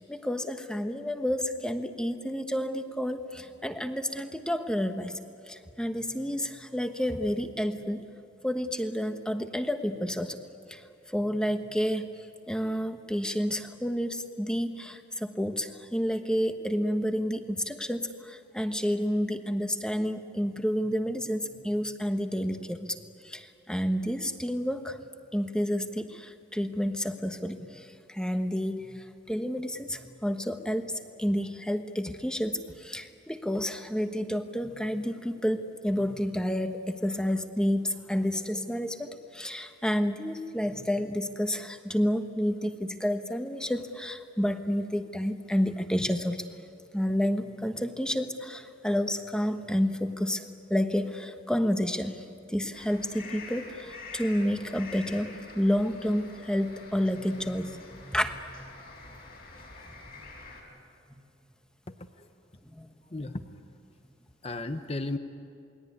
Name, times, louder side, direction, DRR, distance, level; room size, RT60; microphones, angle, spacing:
voice 1, 0.0-5.2 5.5-8.0 8.4-10.4 10.7-10.8 11.1-12.1 12.5-23.0 23.2-25.0 25.3-30.9 31.2-46.5 46.9-50.4 50.7-52.2 52.5-58.7 62.7-62.9 63.2-63.3, equal, 5° left, 7 dB, 1.2 m, -30 dB
sound 1, 52.7-60.6, left 3 dB, 50° left, 5.7 m, -47 dB
voice 2, 61.9-62.3 63.1-63.6 64.4-65.2, left 2 dB, 30° left, 8 dB, 0.9 m, -35 dB
28.5 x 21.5 x 9.7 m, 2.6 s
head